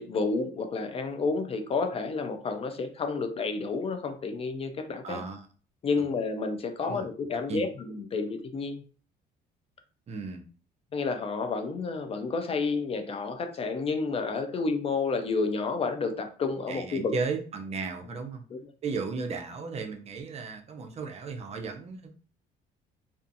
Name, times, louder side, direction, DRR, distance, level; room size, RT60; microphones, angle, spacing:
voice 1, 0.0-5.2 5.8-8.8 10.9-17.1 18.5-18.6, left 4 dB, 35° left, 8 dB, 0.4 m, -30 dB
voice 2, 5.0-5.5 6.8-7.1 7.5-7.7 10.1-10.4 14.5-14.6 16.7-18.4 18.8-22.1, right 4 dB, 40° right, 4 dB, 0.5 m, -35 dB
2.4 x 2.4 x 2.5 m, 0.39 s
cardioid pair, 110°, 17 cm